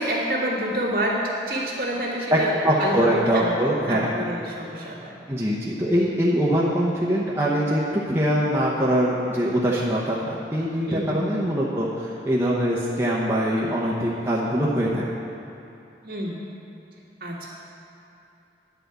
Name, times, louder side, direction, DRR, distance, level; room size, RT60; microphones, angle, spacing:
voice 1, 0.0-3.5 3.9-5.2 10.9-11.2 16.0-16.4 17.2-17.5, equal, 55° right, -5 dB, 2.0 m, -28 dB
voice 2, 2.6-4.1 5.3-15.0, equal, 15° right, -6 dB, 0.8 m, -23 dB
10.5 x 5.0 x 8.0 m, 2.8 s
head